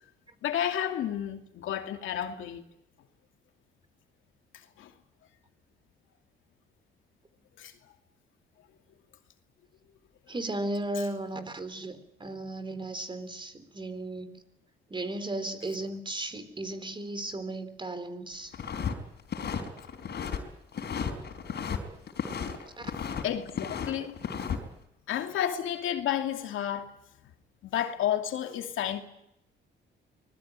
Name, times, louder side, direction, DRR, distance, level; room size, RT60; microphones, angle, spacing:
voice 1, 0.4-2.6 4.8-4.9 7.6-7.7 23.2-24.2 25.1-26.9 27.6-29.0, left 10 dB, 80° left, 2.6 m, -31 dB
voice 2, 10.3-14.4 14.9-18.6 22.8-22.9, right 2 dB, 25° right, 3.9 m, -35 dB
sound 1, 18.5-18.9 19.2-20.4 20.7-21.8 22.1-23.2 23.5-24.6, left 7 dB, 60° left, 4.4 m, -34 dB
24.5 x 20.5 x 9.1 m
cardioid pair, 90°, 20 cm